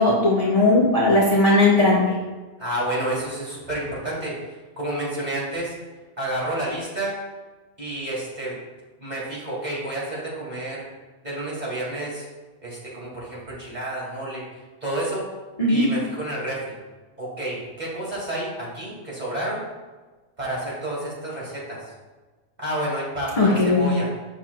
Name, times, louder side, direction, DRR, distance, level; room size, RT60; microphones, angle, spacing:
voice 1, 0.0-2.0 15.6-15.8 23.4-23.9, left 2 dB, 30° left, -6 dB, 1.4 m, -18 dB
voice 2, 2.6-4.3 4.8-5.8 6.2-7.1 7.8-8.6 9.0-10.9 11.2-12.3 12.6-14.4 14.8-15.3 15.7-16.8 17.2-19.6 20.4-21.8 22.6-24.1, right 1 dB, 35° right, -6 dB, 2.4 m, -30 dB
8.6 x 6.1 x 2.3 m, 1.3 s
omnidirectional pair, 1.3 m